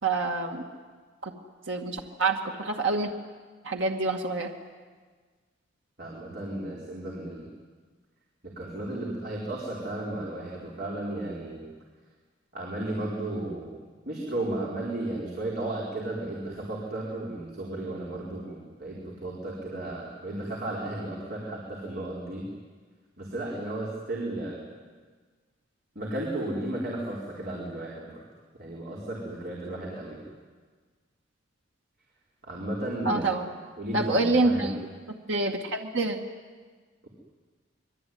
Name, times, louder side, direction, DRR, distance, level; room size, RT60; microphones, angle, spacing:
voice 1, 0.0-0.6 1.2-1.3 1.7-3.1 3.6-4.5 33.1-33.5 33.9-34.7 35.3-36.2, right 3 dB, 75° right, 2 dB, 2.2 m, -26 dB
voice 2, 6.0-7.5 8.4-11.6 12.5-13.8 14.0-22.5 23.2-24.6 25.9-28.2 28.6-30.2 32.4-33.4 33.8-34.7, right 1 dB, 55° right, -4 dB, 4.7 m, -34 dB
26.0 x 23.0 x 9.6 m, 1.5 s
head